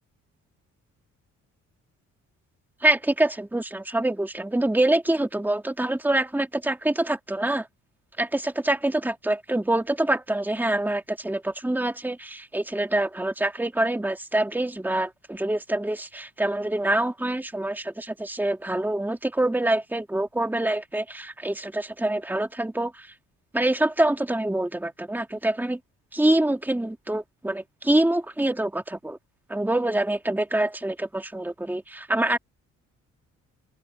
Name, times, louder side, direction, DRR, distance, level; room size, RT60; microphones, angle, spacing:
voice 1, 2.8-7.7 8.2-23.1 23.5-25.8 26.1-29.2 29.5-32.4, right 1 dB, 5° right, 2.0 m, -25 dB
open air
cardioid pair, 90°, 30 cm